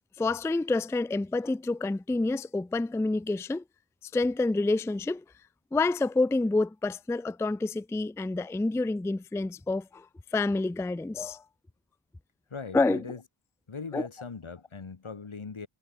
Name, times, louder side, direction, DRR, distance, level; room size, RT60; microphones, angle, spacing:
voice 1, 0.2-3.6 4.1-5.2 5.7-10.1 10.3-11.4 12.7-13.0 13.9-14.1, left 3 dB, 5° left, 0.3 m, -28 dB
voice 2, 12.5-13.2 13.7-15.7, left 5 dB, 75° left, 2.2 m, -40 dB
wide cardioid pair, 40°, 49 cm